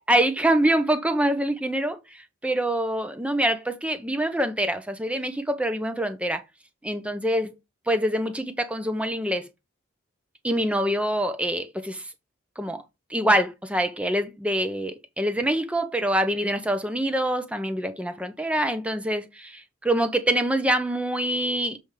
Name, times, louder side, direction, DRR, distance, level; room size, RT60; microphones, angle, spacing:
voice 1, 0.0-6.4 6.8-7.5 7.9-9.5 10.4-12.1 12.6-12.8 13.1-21.8, right 1 dB, 5° right, 0.7 m, -25 dB
7.5 x 3.4 x 4.8 m
head